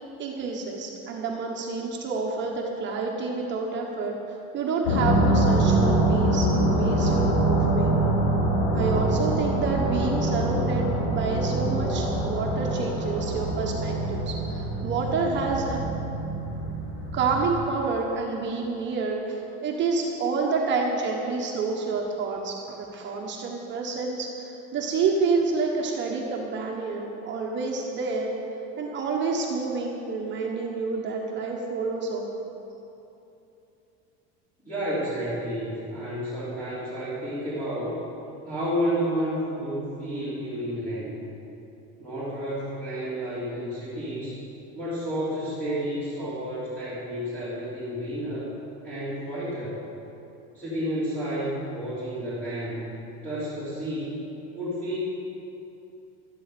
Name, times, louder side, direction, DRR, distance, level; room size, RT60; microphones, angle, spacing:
voice 1, 0.2-7.9 8.7-15.8 17.1-28.3 28.8-32.4, right 4 dB, 35° right, 0 dB, 1.3 m, -28 dB
sound 1, 4.8-17.6, right 1 dB, 70° left, 2.6 m, -24 dB
voice 2, 34.6-38.0 38.4-41.2 42.0-44.4 44.7-48.5 48.8-49.8 50.5-52.9 53.2-54.2 54.5-55.0, equal, 5° left, -13 dB, 2.9 m, -31 dB
12.0 x 11.5 x 5.1 m, 2.9 s
cardioid pair, 160°, 32 cm